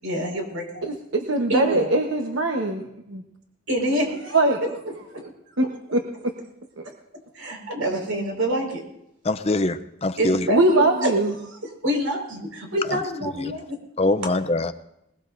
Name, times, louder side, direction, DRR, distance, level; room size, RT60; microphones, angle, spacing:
voice 1, 0.0-0.8 1.5-1.9 3.7-4.4 5.1-5.2 7.3-8.8 10.2-11.1 11.4-13.8, equal, 90° right, 2 dB, 4.9 m, -27 dB
voice 2, 0.8-3.2 4.3-4.6 5.6-6.0 10.5-11.3, right 2 dB, 65° right, 2 dB, 1.1 m, -21 dB
voice 3, 9.2-10.5 13.4-13.5 14.0-14.7, left 2 dB, 30° left, 11 dB, 0.5 m, -23 dB
21.0 x 20.5 x 2.6 m, 0.81 s
head